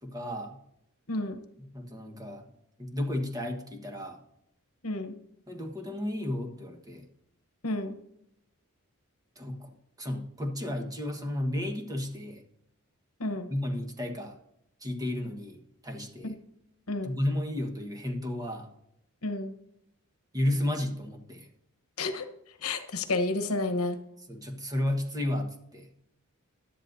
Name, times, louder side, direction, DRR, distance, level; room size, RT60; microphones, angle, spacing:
voice 1, 0.0-0.6 1.6-2.4 2.8-4.2 5.5-7.0 9.3-12.4 13.5-14.3 14.8-16.3 17.0-18.7 20.3-21.5 24.3-25.9, left 1 dB, 15° right, 3 dB, 1.4 m, -33 dB
voice 2, 1.1-1.4 4.8-5.1 7.6-8.0 13.2-13.5 16.2-16.4 16.9-17.2 19.2-19.5 22.0-22.2 22.6-24.0, left 2 dB, 70° left, 8 dB, 1.1 m, -30 dB
16.0 x 11.0 x 2.7 m, 0.79 s
head